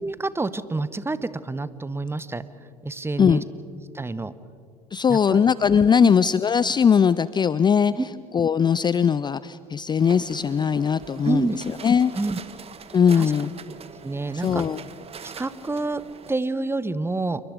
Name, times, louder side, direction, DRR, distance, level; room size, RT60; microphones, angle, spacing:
voice 1, 0.0-2.4 2.8-3.4 3.9-4.3 5.1-5.4 6.0-6.1 8.0-8.1 11.2-11.6 12.1-12.4 13.1-13.3 14.0-14.6 15.2-16.0 16.3-17.4, right 3 dB, 10° right, 15 dB, 1.0 m, -28 dB
voice 2, 4.9-7.9 8.3-11.5 11.8-12.1 12.9-13.5 14.4-14.8, left 7 dB, 20° left, 17 dB, 0.5 m, -20 dB
sound 1, 10.0-16.4, right 6 dB, 30° right, 1.3 m, -43 dB
28.0 x 23.0 x 5.3 m, 2.3 s
hypercardioid pair, 65°, 20 cm